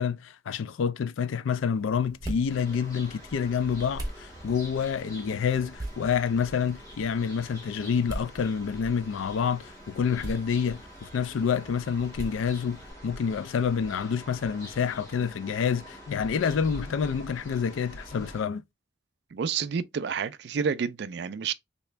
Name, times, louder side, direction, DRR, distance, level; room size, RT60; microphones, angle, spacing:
voice 1, 0.0-18.6, left 6 dB, 85° left, 0.4 m, -28 dB
sound 1, 1.8-12.9, right 1 dB, 20° right, 0.8 m, -42 dB
sound 2, 2.5-18.4, equal, 15° left, 1.6 m, -46 dB
voice 2, 19.3-21.5, right 6 dB, 55° right, 0.3 m, -29 dB
3.4 x 2.9 x 3.1 m
head